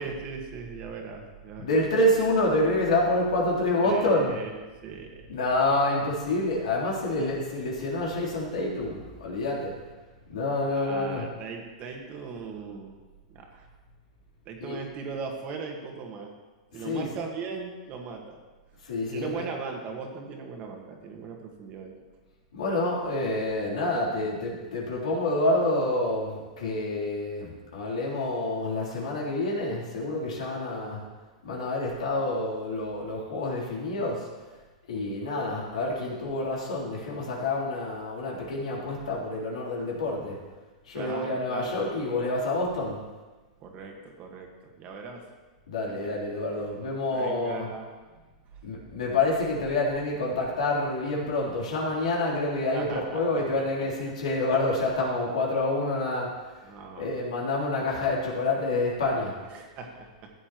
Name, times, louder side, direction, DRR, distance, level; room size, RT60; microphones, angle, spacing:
voice 1, 0.0-1.7 3.8-4.5 4.8-5.3 10.7-13.0 13.3-13.7 14.5-16.3 16.7-18.4 19.1-21.9 40.9-41.8 43.6-45.2 45.9-46.2 46.6-46.7 47.1-47.9 52.7-53.9 56.6-57.1 59.5-60.3, right 5 dB, 35° right, 2 dB, 1.6 m, -39 dB
voice 2, 1.6-4.3 5.3-9.8 10.3-11.2 14.6-14.8 16.7-17.1 18.8-19.4 22.5-31.0 31.4-34.3 34.9-40.4 40.9-43.0 45.7-47.7 48.6-56.6 57.0-59.4, left 2 dB, 85° left, -4 dB, 3.4 m, -28 dB
14.5 x 8.5 x 3.1 m, 1.3 s
hypercardioid pair, 140°, 4 cm